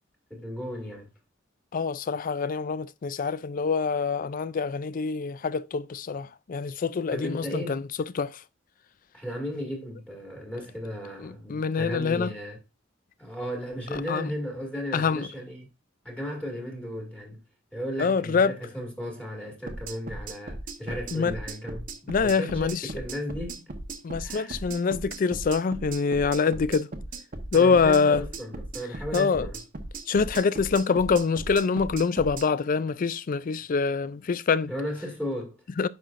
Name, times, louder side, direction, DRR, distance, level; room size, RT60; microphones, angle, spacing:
voice 1, 0.3-1.1 7.1-7.9 9.1-12.6 13.2-15.7 16.0-17.4 17.7-23.7 24.2-24.6 27.5-29.6 34.7-35.6, equal, 5° left, 2.1 m, -35 dB
voice 2, 1.7-7.8 8.1-8.4 11.2-12.3 14.1-14.3 14.9-15.3 18.0-18.5 21.1-21.4 22.1-22.8 24.0-26.9 27.5-28.2 29.1-29.5 30.1-34.7 35.8-35.9, left 5 dB, 45° left, 0.4 m, -25 dB
sound 1, 19.7-32.5, right 2 dB, 45° right, 1.1 m, -38 dB
9.4 x 5.8 x 2.5 m
head